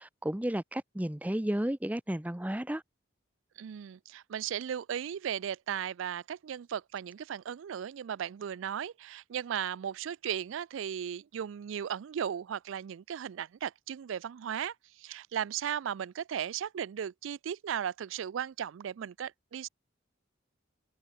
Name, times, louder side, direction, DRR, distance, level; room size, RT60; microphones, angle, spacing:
voice 1, 0.0-2.8, right 1 dB, 10° right, 0.5 m, -33 dB
voice 2, 3.6-19.7, right 9 dB, 85° right, 0.4 m, -36 dB
head